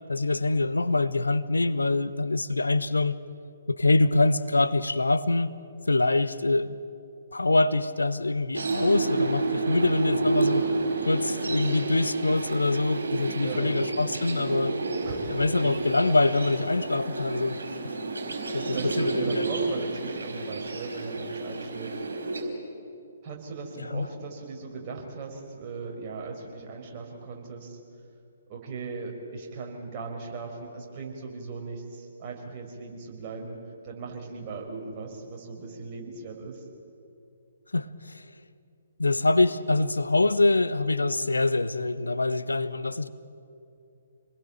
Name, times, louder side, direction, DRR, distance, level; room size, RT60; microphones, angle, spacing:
voice 1, 0.1-3.2 3.7-5.5 5.9-6.7 7.3-10.7 11.0-14.7 15.3-17.6 18.5-19.5 23.8-24.1 37.7-38.2 39.0-43.1, left 2 dB, 75° left, 1.0 m, -24 dB
sound 1, 8.5-22.4, right 3 dB, 65° right, 4.9 m, -30 dB
voice 2, 13.4-13.8 15.0-15.3 18.7-22.0 23.2-27.8 28.5-33.6 33.8-36.6, right 4 dB, 30° right, 5.1 m, -38 dB
27.5 x 20.5 x 9.0 m
figure-of-eight pair, 130°, 0 cm